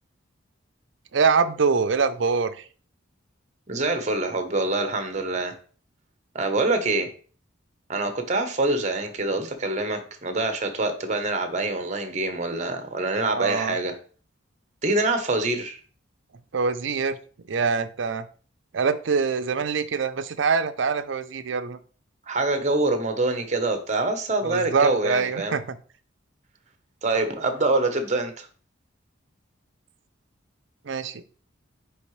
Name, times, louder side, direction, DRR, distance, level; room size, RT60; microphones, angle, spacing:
voice 1, 1.1-2.5 13.3-13.8 16.5-17.2 17.5-18.3 18.7-21.8 24.4-25.6 30.9-31.2, right 5 dB, 70° right, 11 dB, 0.5 m, -24 dB
voice 2, 3.7-5.5 6.3-7.1 7.9-13.9 14.8-15.8 22.3-25.6 27.0-28.5, right 2 dB, 35° right, 8 dB, 0.9 m, -25 dB
9.5 x 3.5 x 3.1 m, 0.40 s
head